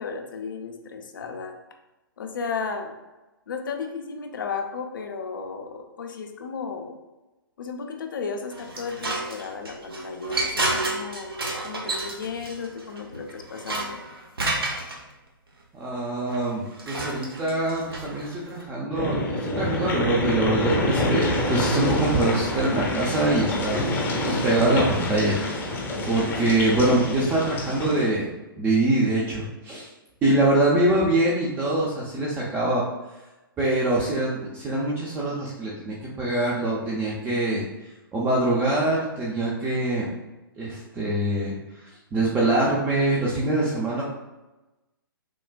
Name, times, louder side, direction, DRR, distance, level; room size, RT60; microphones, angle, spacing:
voice 1, 0.0-1.5 2.2-2.9 3.5-6.9 7.6-11.4 11.6-14.0 30.2-30.6, left 5 dB, 60° left, 4 dB, 0.6 m, -34 dB
sound 1, 8.5-15.0 16.3-18.6, right 2 dB, 75° right, 0.9 m, -31 dB
voice 2, 15.7-23.8 24.3-25.4 26.0-28.3 28.6-29.9 30.2-32.8 33.6-37.6 38.1-40.1 40.6-44.0, right 2 dB, 15° right, -5 dB, 0.6 m, -24 dB
sound 2, 18.9-28.1, left 1 dB, 15° left, 0.8 m, -27 dB
6.0 x 2.3 x 2.2 m, 1.0 s
figure-of-eight pair, 120°, 12 cm